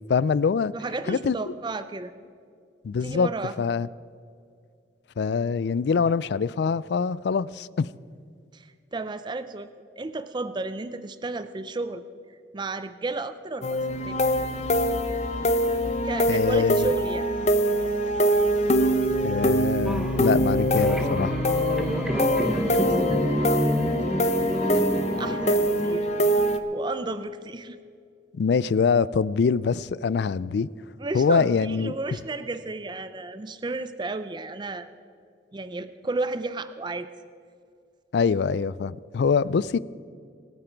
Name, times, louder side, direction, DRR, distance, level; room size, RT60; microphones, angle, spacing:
voice 1, 0.1-0.7 1.1-1.3 2.8-3.3 3.6-3.9 5.2-7.9 16.3-16.9 19.2-21.4 28.3-30.7 31.1-31.9 38.1-39.8, left 5 dB, 65° left, 0.3 m, -24 dB
voice 2, 0.7-2.1 2.9-3.6 8.5-9.7 10.0-12.0 12.5-13.8 14.0-14.2 16.0-17.3 22.3-26.1 26.7-27.8 31.0-34.9 35.5-37.1, right 3 dB, 25° right, 0.4 m, -33 dB
sound 1, 13.6-26.6, equal, 35° left, 0.8 m, -24 dB
sound 2, 13.8-26.5, right 1 dB, 45° right, 0.9 m, -39 dB
sound 3, 19.9-25.9, equal, 5° right, 0.8 m, -28 dB
25.0 x 8.9 x 4.6 m
head